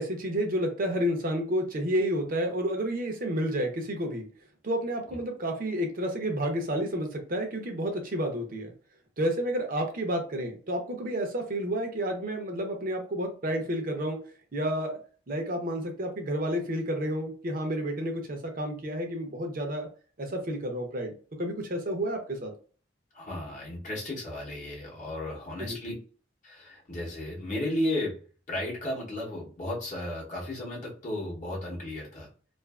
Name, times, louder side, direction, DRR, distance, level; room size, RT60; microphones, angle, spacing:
voice 1, 0.0-4.3 4.6-8.7 9.2-14.2 14.5-15.0 15.3-19.9 20.2-21.1 21.4-22.5 25.6-25.8, equal, 45° right, 3 dB, 0.6 m, -30 dB
voice 2, 23.1-25.9 26.4-28.2 28.5-32.3, left 1 dB, 40° left, -4 dB, 0.8 m, -34 dB
2.5 x 2.4 x 2.3 m, 0.40 s
head